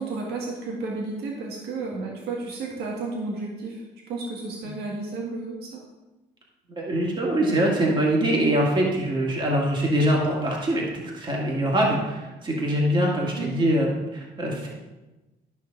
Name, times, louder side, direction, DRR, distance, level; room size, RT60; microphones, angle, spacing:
voice 1, 0.0-5.8 13.3-13.5, right 3 dB, 70° right, -2 dB, 1.8 m, -32 dB
voice 2, 6.7-10.8 11.1-14.7, right 1 dB, 30° right, -2 dB, 2.1 m, -23 dB
12.5 x 5.7 x 4.0 m, 1.1 s
cardioid pair, 110°, 17 cm